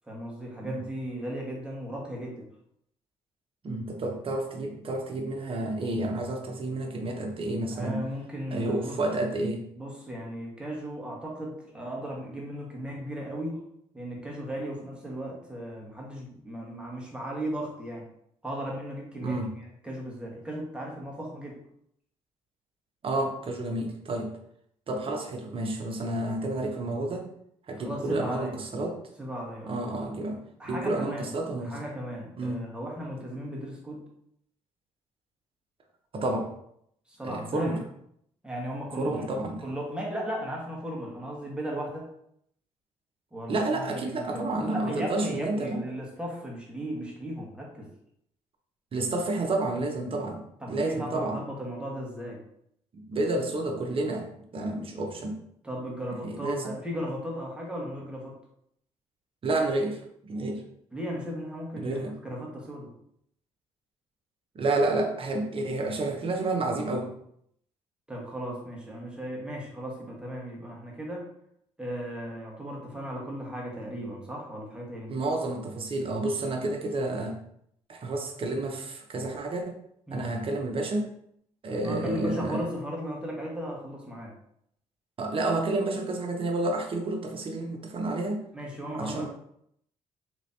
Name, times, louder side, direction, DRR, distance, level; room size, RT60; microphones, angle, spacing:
voice 1, 0.1-2.4 7.7-9.0 9.7-13.6 13.9-18.1 18.4-19.4 19.8-21.6 27.8-28.5 29.2-29.8 30.6-31.3 31.6-34.1 37.1-37.7 38.4-39.3 39.6-42.1 43.3-47.9 50.6-52.4 55.6-58.3 60.9-62.9 68.1-71.3 71.8-75.1 80.1-80.3 81.8-84.3 88.5-89.3, equal, 5° right, -3 dB, 1.3 m, -36 dB
voice 2, 3.6-8.0 8.5-9.6 19.2-19.5 23.0-24.4 24.9-27.3 27.7-29.0 29.7-30.4 30.7-31.8 32.4-32.6 36.1-36.5 37.2-37.8 39.0-39.6 43.5-45.8 48.9-50.4 50.7-51.4 52.9-55.4 56.2-56.7 59.4-60.6 61.7-62.1 64.5-67.1 75.1-77.4 77.9-79.8 80.1-81.1 81.6-82.7 85.2-88.4 88.9-89.3, right 2 dB, 45° right, 3 dB, 0.8 m, -30 dB
3.3 x 3.0 x 2.7 m, 0.71 s
supercardioid pair, 65°, 13 cm